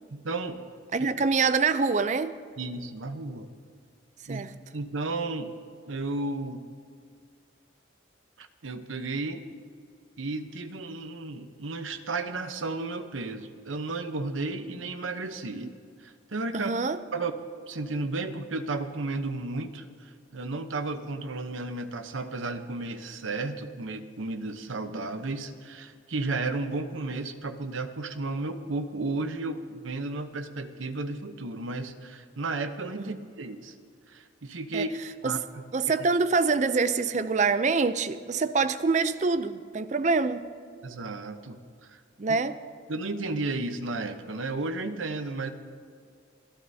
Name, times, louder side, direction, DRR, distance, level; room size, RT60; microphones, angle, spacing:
voice 1, 0.1-0.6 1.0-1.1 2.6-3.5 4.3-4.4 4.7-5.5 5.9-6.6 8.4-9.4 10.2-15.7 16.0-16.7 17.1-17.3 17.7-33.7 34.1-34.9 35.2-35.4 40.8-41.6 41.9-42.0 42.3-42.4 42.9-45.5, right 3 dB, 85° right, 0.9 m, -33 dB
voice 2, 0.9-2.4 4.3-4.5 15.5-15.7 16.5-17.0 24.8-24.9 33.0-33.2 34.7-34.9 35.2-35.3 35.7-40.5 42.2-42.6, right 4 dB, 35° right, 0.4 m, -25 dB
26.5 x 13.0 x 2.8 m
head